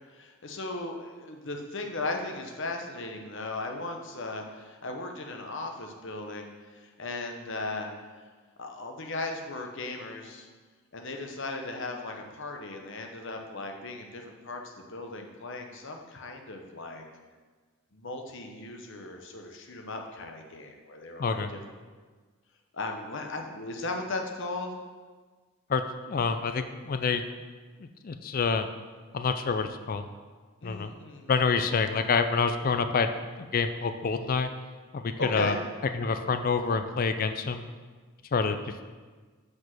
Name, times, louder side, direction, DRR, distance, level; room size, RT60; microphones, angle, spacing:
voice 1, 0.1-7.9 8.6-10.5 10.9-17.0 17.9-21.6 22.7-24.8 30.6-31.3 35.1-35.6, left 2 dB, 55° left, 3 dB, 0.9 m, -37 dB
voice 2, 21.2-21.5 25.7-27.2 27.8-28.7 29.1-30.0 30.6-30.9 31.3-33.1 33.4-34.5 34.9-35.6 35.9-37.6 38.3-38.8, left 5 dB, 40° left, 9 dB, 0.4 m, -27 dB
6.0 x 5.3 x 6.0 m, 1.4 s
head